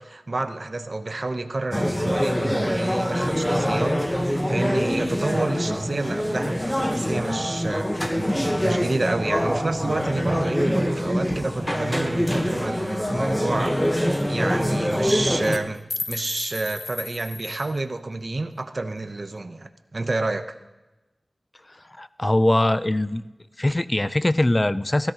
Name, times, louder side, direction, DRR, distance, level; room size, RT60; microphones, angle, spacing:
voice 1, 0.0-6.6 6.9-8.0 8.6-13.8 14.3-20.4, right 2 dB, 55° right, 8 dB, 0.8 m, -29 dB
sound 1, 1.7-15.6, equal, 10° left, 1.1 m, -24 dB
sound 2, 13.0-13.1 13.4-13.5 13.7-13.9 14.1-14.3 14.9-15.1 15.4-17.8, left 3 dB, 70° left, 0.7 m, -34 dB
voice 2, 22.0-23.2 23.6-25.1, left 1 dB, 30° left, 14 dB, 0.5 m, -21 dB
16.5 x 13.5 x 2.9 m, 1.0 s
wide cardioid pair, 50°, 0 cm